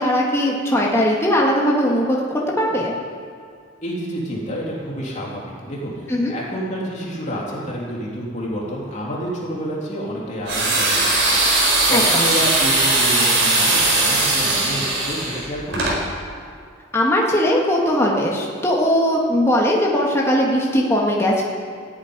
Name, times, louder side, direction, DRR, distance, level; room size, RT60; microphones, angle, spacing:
voice 1, 0.0-2.2 2.6-2.9 6.1-6.3 11.9-12.0 16.9-21.4, equal, 15° left, -3 dB, 1.9 m, -19 dB
voice 2, 3.8-16.0, equal, 35° left, -5 dB, 3.3 m, -29 dB
sound 1, 10.5-16.0, right 2 dB, 65° right, 4.5 m, -19 dB
15.0 x 9.7 x 9.7 m, 2.2 s
head